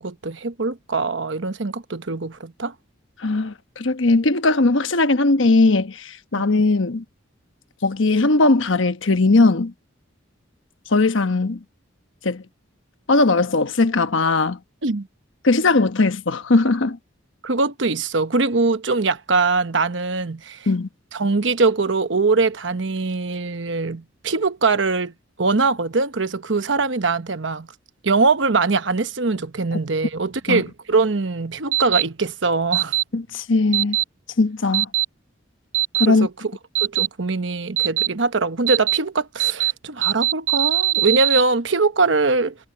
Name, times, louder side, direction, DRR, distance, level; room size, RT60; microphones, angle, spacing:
voice 1, 0.0-2.7 14.8-15.1 17.4-20.7 21.1-25.1 25.4-27.7 28.0-33.0 36.1-36.3 36.8-42.6, right 3 dB, 65° right, 1.0 m, -22 dB
voice 2, 3.2-7.0 7.8-9.7 10.9-11.6 12.2-12.4 13.1-14.6 15.4-17.0 20.7-20.9 30.5-30.6 33.1-34.0 34.4-34.9 36.0-36.3, left 3 dB, 75° left, 1.1 m, -19 dB
sound 1, 31.7-32.0 32.7-33.0 33.7-34.0 34.7-35.0 35.7-36.1 36.8-37.1 37.8-38.1 38.7-39.0 39.4-39.7 40.0-41.4, right 15 dB, 85° right, 0.7 m, -20 dB
head